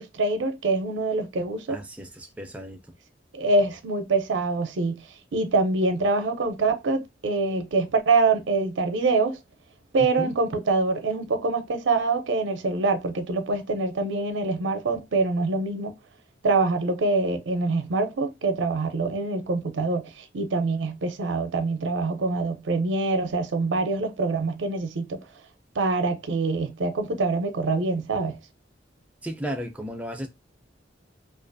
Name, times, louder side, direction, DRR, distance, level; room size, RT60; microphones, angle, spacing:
voice 1, 0.0-1.8 3.3-5.0 5.3-9.4 9.9-15.9 16.4-25.2 25.8-28.4, right 3 dB, 80° right, 0.5 m, -25 dB
voice 2, 1.7-2.8 10.0-10.3 29.2-30.3, equal, 10° right, 0.4 m, -34 dB
2.4 x 2.4 x 2.5 m
head